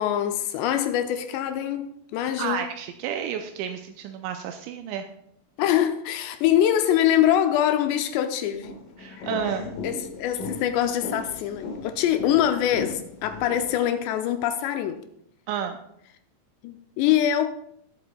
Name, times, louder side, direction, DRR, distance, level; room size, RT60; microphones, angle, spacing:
voice 1, 0.0-2.6 5.6-8.8 9.8-15.0 16.6-17.5, left 11 dB, 85° left, 2.7 m, -24 dB
voice 2, 2.4-5.0 9.0-9.7 15.5-15.8, right 8 dB, 85° right, 2.9 m, -31 dB
sound 1, 8.6-13.8, left 3 dB, 60° left, 2.7 m, -37 dB
17.0 x 7.9 x 2.3 m
omnidirectional pair, 5.2 m